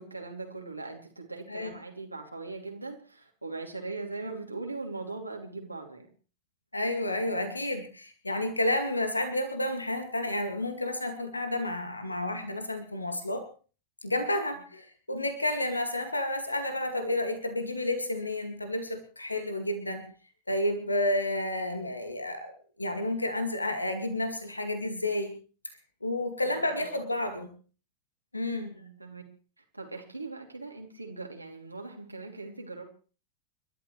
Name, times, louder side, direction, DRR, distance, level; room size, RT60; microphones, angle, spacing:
voice 1, 0.0-6.1 26.4-26.7 28.5-29.3 29.7-32.9, right 3 dB, 85° right, 1 dB, 2.9 m, -40 dB
voice 2, 6.7-13.5 14.0-20.1 20.5-25.3 26.0-27.5 28.3-28.7, left 1 dB, 80° left, 7 dB, 2.2 m, -31 dB
30.0 x 12.5 x 3.3 m, 0.39 s
figure-of-eight pair, 90°, 0 cm